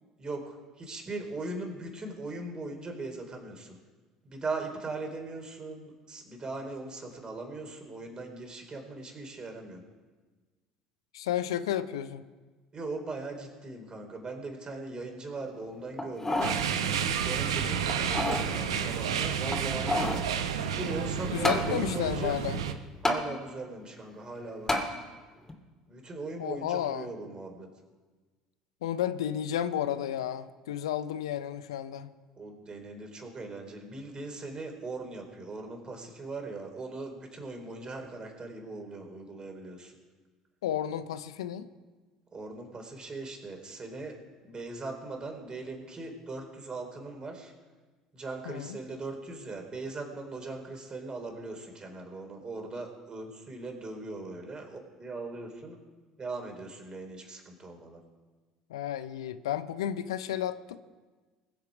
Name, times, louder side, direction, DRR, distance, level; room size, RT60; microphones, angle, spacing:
voice 1, 0.2-3.8 4.2-9.8 12.7-16.5 17.2-20.1 20.8-22.3 23.0-24.8 25.9-27.7 32.4-39.9 42.3-44.1 44.4-47.5 48.1-55.8 56.2-58.0, right 3 dB, 30° right, 3 dB, 4.2 m, -39 dB
voice 2, 11.1-12.2 21.3-22.6 26.4-27.1 28.8-32.1 40.6-41.7 48.5-48.8 58.7-60.8, left 10 dB, 80° left, 14 dB, 0.6 m, -32 dB
sound 1, 16.0-16.6 17.1-17.2 17.9-18.5 19.5-20.3 21.4-21.7 23.0-23.2 24.7-24.9 25.5-25.6, left 1 dB, 15° left, 2.6 m, -29 dB
sound 2, 16.4-22.7, right 7 dB, 80° right, 1.0 m, -30 dB
21.5 x 7.4 x 5.2 m, 1.3 s
hypercardioid pair, 65°, 3 cm